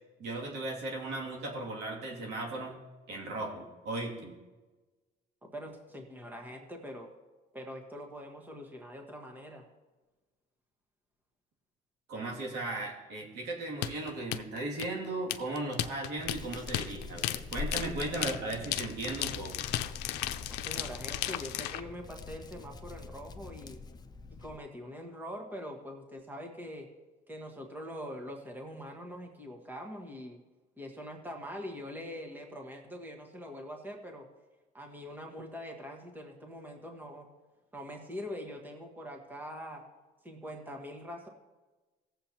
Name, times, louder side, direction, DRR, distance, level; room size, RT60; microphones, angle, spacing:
voice 1, 0.2-2.8 3.1-4.3 12.1-19.7, right 2 dB, 80° right, -1 dB, 2.6 m, -37 dB
voice 2, 5.4-7.1 7.5-9.6 18.3-18.5 20.5-23.8 24.4-26.9 27.3-30.4 30.8-34.3 34.7-37.3 37.7-39.8 40.2-41.3, equal, 10° right, 2 dB, 1.5 m, -43 dB
sound 1, 13.8-21.8, left 13 dB, 85° left, 0.6 m, -35 dB
Hands, 16.2-24.6, left 4 dB, 25° left, 0.6 m, -45 dB
17.5 x 7.7 x 2.9 m, 1.2 s
cardioid pair, 110°, 17 cm